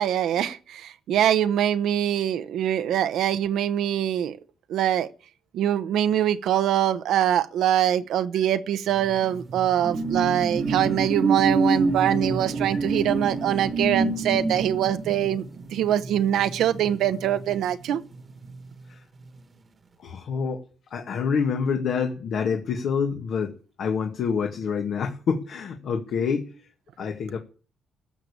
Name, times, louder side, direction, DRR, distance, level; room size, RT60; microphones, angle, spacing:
voice 1, 0.0-4.4 4.7-5.1 5.5-15.4 15.7-18.0, right 11 dB, 80° right, 1.0 m, -23 dB
sound 1, 9.0-17.9 18.3-18.5, right 3 dB, 35° right, 1.5 m, -27 dB
voice 2, 20.0-20.6 20.9-23.5 23.8-26.7 27.0-27.4, left 6 dB, 70° left, 2.1 m, -27 dB
16.0 x 6.8 x 8.6 m
cardioid pair, 90°, 0 cm